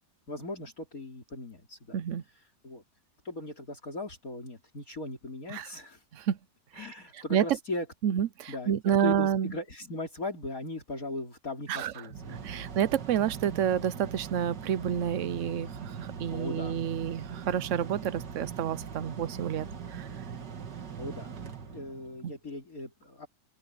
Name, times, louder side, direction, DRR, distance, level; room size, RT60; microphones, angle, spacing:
voice 1, 0.3-2.0 2.6-2.8 3.2-6.0 6.8-7.9 8.5-8.7 9.0-12.7 16.3-16.8 21.0-21.3 21.6-23.3, left 2 dB, 55° left, 3.8 m, -38 dB
voice 2, 1.9-2.2 5.5-5.7 6.1-6.4 6.7-6.9 7.1-7.5 8.0-9.5 11.7-11.9 12.3-20.1 22.2-22.3, right 9 dB, 60° right, 0.8 m, -29 dB
Mechanical fan, 11.9-22.3, right 6 dB, 85° right, 2.3 m, -41 dB
open air
omnidirectional pair, 1.8 m